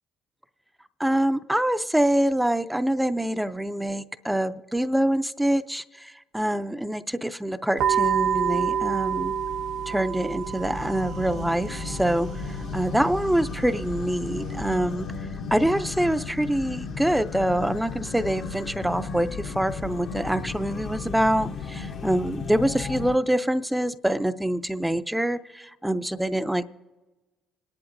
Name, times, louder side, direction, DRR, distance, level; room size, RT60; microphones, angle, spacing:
voice 1, 1.0-9.3 9.9-15.1 15.5-26.6, right 1 dB, 5° right, 12 dB, 0.4 m, -25 dB
sound 1, 7.8-14.8, right 7 dB, 65° right, 0.6 m, -29 dB
sound 2, 10.4-23.2, left 5 dB, 50° left, 0.7 m, -35 dB
25.5 x 10.5 x 2.6 m, 1.2 s
cardioid pair, 105°, 0 cm